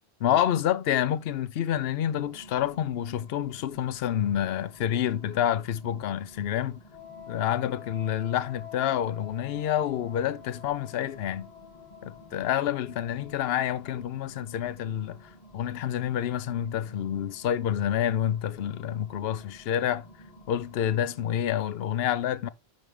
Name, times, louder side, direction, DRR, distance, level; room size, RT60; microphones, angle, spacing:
voice 1, 0.2-6.8 7.3-11.5 12.0-15.2 15.5-20.0 20.5-22.5, left 10 dB, 70° left, 0.8 m, -28 dB
sound 1, 1.9-21.6, equal, 35° left, 2.5 m, -53 dB
Wind instrument woodwind instrument, 6.9-14.2, left 10 dB, 30° right, 3.1 m, -48 dB
10.5 x 4.8 x 3.6 m
omnidirectional pair, 1.1 m